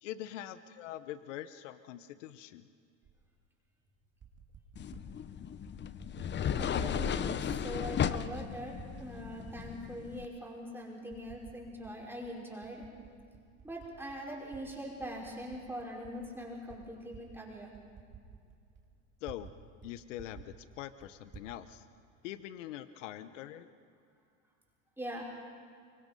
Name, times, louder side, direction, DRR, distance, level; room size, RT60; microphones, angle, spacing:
voice 1, 0.0-2.6 19.2-19.5 19.8-21.8 22.2-23.7, left 12 dB, 85° left, 13 dB, 0.9 m, -43 dB
Typing, 3.0-3.2 4.0-5.1 5.6-6.3 6.5-7.1 7.3-8.4 8.7-9.9 10.4-10.5 11.1-11.9 12.2-14.6 15.0-19.6 19.8-19.9 20.2-21.5, right 7 dB, 30° right, 3.0 m, -53 dB
sound 1, 4.8-10.3, left 8 dB, 30° left, 0.8 m, -35 dB
voice 2, 6.5-12.9 13.6-17.7 25.0-25.2, equal, 5° right, -3 dB, 5.3 m, -42 dB
24.5 x 24.0 x 5.3 m, 2.4 s
supercardioid pair, 95°, 36 cm